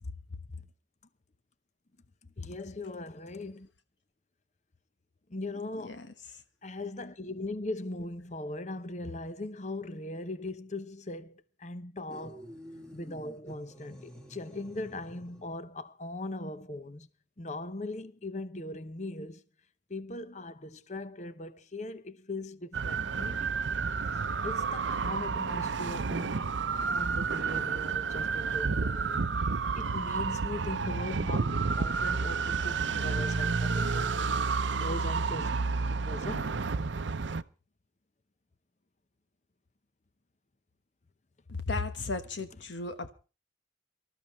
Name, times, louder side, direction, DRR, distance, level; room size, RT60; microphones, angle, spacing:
voice 1, 2.2-3.7 5.3-6.0 6.6-12.4 12.9-17.1 17.4-19.4 19.9-23.5 24.4-26.5 26.9-36.6, left 2 dB, 40° left, 0.8 m, -40 dB
sound 1, 12.1-15.6, equal, 5° left, 1.8 m, -50 dB
sound 2, 22.7-37.4, right 4 dB, 75° right, 0.7 m, -30 dB
voice 2, 41.5-43.1, left 3 dB, 75° left, 1.2 m, -35 dB
25.0 x 13.5 x 3.1 m
head